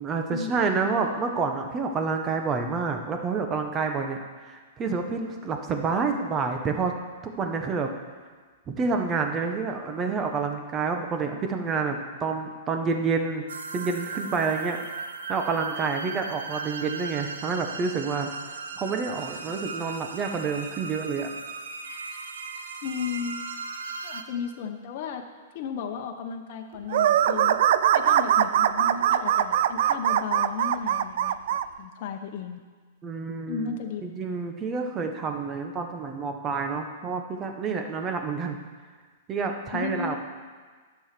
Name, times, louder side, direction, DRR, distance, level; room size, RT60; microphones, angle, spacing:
voice 1, 0.0-4.2 4.4-6.9 7.2-7.9 8.7-13.4 13.7-21.3 33.0-33.7 34.0-38.6 39.3-40.2, right 4 dB, 20° right, 4 dB, 1.2 m, -28 dB
sound 1, 13.5-24.2, right 4 dB, 90° right, 0.9 m, -37 dB
voice 2, 22.8-23.4 24.0-25.3 25.5-27.6 27.9-31.4 31.8-32.6 33.4-34.0 39.7-40.2, left 6 dB, 50° left, 3 dB, 1.0 m, -34 dB
sound 2, 26.9-31.6, right 10 dB, 60° right, 0.4 m, -22 dB
11.0 x 7.2 x 6.0 m, 1.5 s
hypercardioid pair, 145°, 0 cm